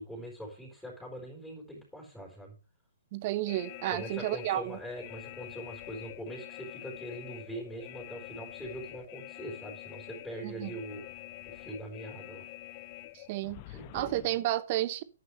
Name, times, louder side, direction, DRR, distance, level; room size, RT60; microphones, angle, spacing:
voice 1, 0.0-2.5 3.9-11.0 11.4-12.5 13.7-14.1, right 1 dB, ahead, 4.8 m, -42 dB
voice 2, 3.1-4.8 10.4-10.7 13.1-13.6 13.9-15.0, right 14 dB, 35° right, 1.0 m, -31 dB
sound 1, 3.5-14.3, left 16 dB, 35° left, 0.7 m, -46 dB
11.5 x 10.0 x 3.2 m
figure-of-eight pair, 125°, 0 cm